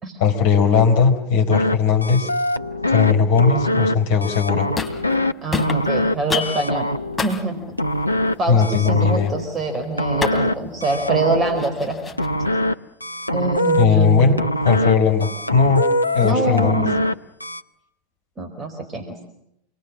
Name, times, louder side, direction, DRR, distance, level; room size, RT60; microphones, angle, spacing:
voice 1, 0.2-2.3 2.9-4.7 8.5-9.3 13.8-14.4 14.6-15.9 16.1-16.8, left 5 dB, 50° left, 5 dB, 4.5 m, -17 dB
sound 1, 1.5-1.7 2.0-3.1 3.4-3.9 4.2-5.3 5.6-6.1 6.4-7.2 7.8-8.3 8.6-9.4 10.0-10.5 10.8-11.6 12.2-12.7 13.0-13.8 14.4-14.9 15.2-16.3 16.6-17.1 17.4-17.6, left 1 dB, 85° left, 0.9 m, -23 dB
sound 2, 4.4-5.2 5.5-12.5, left 5 dB, 15° left, 3.1 m, -32 dB
voice 2, 5.4-6.9 7.2-7.6 8.4-12.0 13.3-14.4 16.2-17.0 18.4-19.2, right 2 dB, 20° right, 6 dB, 4.4 m, -24 dB
27.5 x 22.5 x 7.5 m, 0.83 s
figure-of-eight pair, 90°, 0 cm